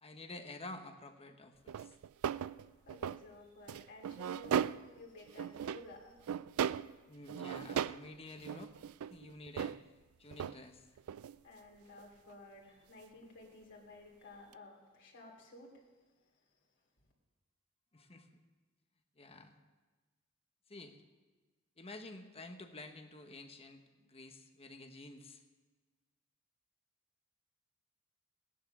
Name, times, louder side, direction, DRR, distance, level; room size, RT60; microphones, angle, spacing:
voice 1, 0.0-1.9 7.1-8.7 9.1-9.8 10.2-10.9 17.9-18.3 19.2-19.6 20.7-20.9 21.8-25.4, left 2 dB, 25° left, 6 dB, 1.2 m, -50 dB
sound 1, 1.7-3.2 3.7-5.0 5.3-5.9 6.3-7.0 7.3-8.1 8.3-9.8 10.3-10.6 11.0-11.4 12.0-12.1 14.5-14.6, right 8 dB, 70° right, 0.3 m, -37 dB
voice 2, 2.8-6.3 11.4-15.8, left 2 dB, 55° left, -1 dB, 3.0 m, -54 dB
17.0 x 10.5 x 6.2 m, 1.3 s
head